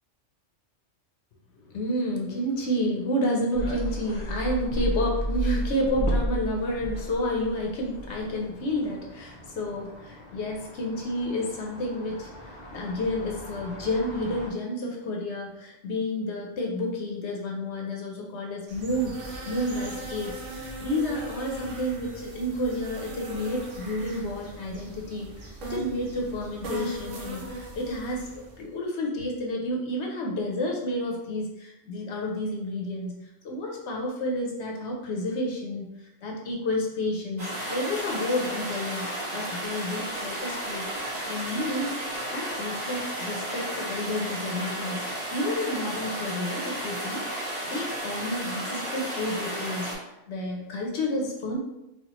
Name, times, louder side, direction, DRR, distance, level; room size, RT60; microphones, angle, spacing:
voice 1, 1.6-19.2 19.5-33.2 33.4-35.9 36.2-40.9 41.3-42.0 42.3-45.0 45.3-49.9 50.3-51.6, left 1 dB, 65° left, 0 dB, 0.9 m, -30 dB
sound 1, 3.5-14.5, right 1 dB, 45° left, 0.7 m, -34 dB
sound 2, 18.7-28.6, right 1 dB, 80° right, 1.1 m, -39 dB
sound 3, 37.4-49.9, right 1 dB, 35° right, 1.1 m, -33 dB
4.3 x 2.4 x 2.9 m, 0.90 s
omnidirectional pair, 1.3 m